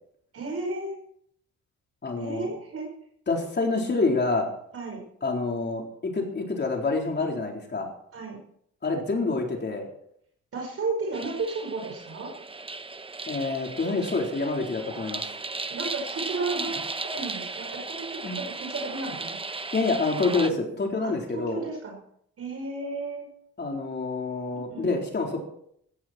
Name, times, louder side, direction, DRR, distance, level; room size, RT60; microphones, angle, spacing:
voice 1, 0.3-1.0 2.2-2.9 4.7-5.0 8.1-8.4 10.5-12.3 15.7-19.4 21.3-22.0 22.4-23.3 24.7-25.0, right 3 dB, 50° right, 1 dB, 5.0 m, -33 dB
voice 2, 2.0-2.5 3.3-4.5 5.2-7.9 8.8-9.9 13.3-15.2 16.5-16.7 18.2-18.4 19.7-21.6 23.6-25.4, left 3 dB, 35° left, 1 dB, 4.1 m, -27 dB
sound 1, 11.1-20.5, right 3 dB, 20° right, 1.0 m, -36 dB
16.0 x 14.5 x 4.5 m, 0.68 s
cardioid pair, 90°, 30 cm